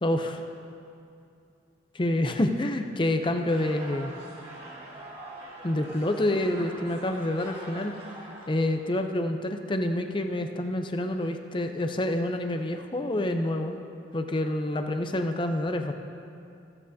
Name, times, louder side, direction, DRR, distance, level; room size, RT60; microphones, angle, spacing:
voice 1, 0.0-0.4 1.9-4.1 5.6-8.0 8.5-13.7 14.1-15.9, left 1 dB, 25° left, 6 dB, 0.6 m, -27 dB
sound 1, 3.4-8.8, right 1 dB, 30° right, 2.1 m, -44 dB
14.5 x 14.0 x 2.8 m, 2.6 s
head